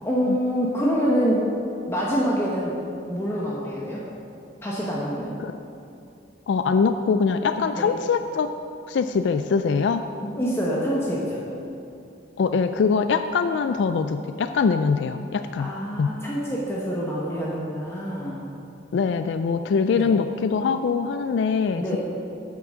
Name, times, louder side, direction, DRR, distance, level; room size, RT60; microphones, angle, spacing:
voice 1, 0.0-1.5 1.9-2.8 3.1-4.0 4.6-5.3 7.7-7.9 10.2-11.4 15.6-18.4 19.9-20.1 21.7-22.0, equal, 15° left, -6 dB, 0.9 m, -26 dB
voice 2, 6.5-8.5 8.9-10.1 12.4-15.7 16.0-16.1 18.9-21.8, left 5 dB, 65° left, 9 dB, 0.3 m, -23 dB
8.2 x 6.0 x 6.2 m, 2.6 s
head